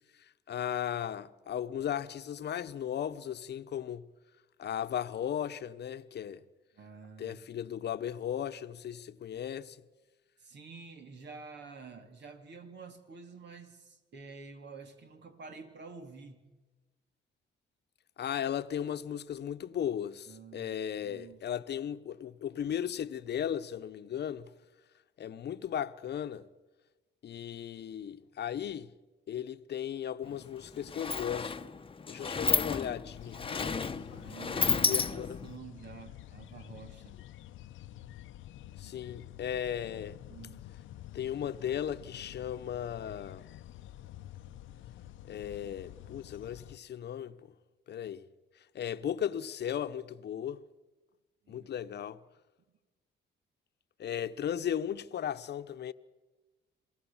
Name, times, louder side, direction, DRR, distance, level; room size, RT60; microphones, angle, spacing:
voice 1, 0.5-4.1 4.6-6.4 7.2-9.8 18.2-24.5 25.2-26.4 27.2-28.9 29.3-31.5 32.1-33.7 34.9-35.4 38.8-40.2 41.1-43.5 45.2-47.4 47.9-48.2 48.7-50.6 51.5-52.2 54.0-55.9, left 9 dB, 60° left, 1.0 m, -36 dB
voice 2, 6.7-7.4 10.4-16.4 20.3-21.4 33.9-37.2 40.3-40.6 51.4-51.7, right 5 dB, 60° right, 3.2 m, -49 dB
Sliding door, 30.2-30.4 30.6-35.6, left 5 dB, 25° left, 1.0 m, -32 dB
sound 1, 33.0-46.8, left 13 dB, 80° left, 0.8 m, -49 dB
27.5 x 18.5 x 7.3 m
cardioid pair, 90°, 20 cm